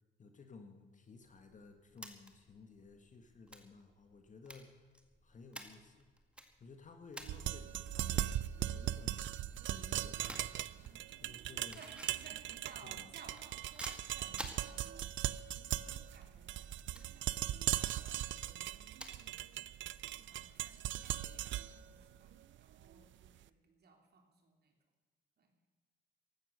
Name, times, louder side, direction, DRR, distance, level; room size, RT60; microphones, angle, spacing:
voice 1, 0.2-5.0 5.2-6.1 6.6-8.3 8.6-11.8 12.8-13.1, left 4 dB, 40° left, 6 dB, 1.7 m, -56 dB
sound 1, 1.2-20.8, equal, 5° right, 2.0 m, -55 dB
sound 2, 7.2-23.3, right 13 dB, 70° right, 0.6 m, -39 dB
voice 2, 11.7-15.4 15.7-16.7 17.0-18.5 19.3-19.5 20.0-24.8 25.4-25.5, right 4 dB, 55° right, 3 dB, 3.5 m, -60 dB
15.5 x 12.0 x 6.5 m, 1.4 s
cardioid pair, 90°, 20 cm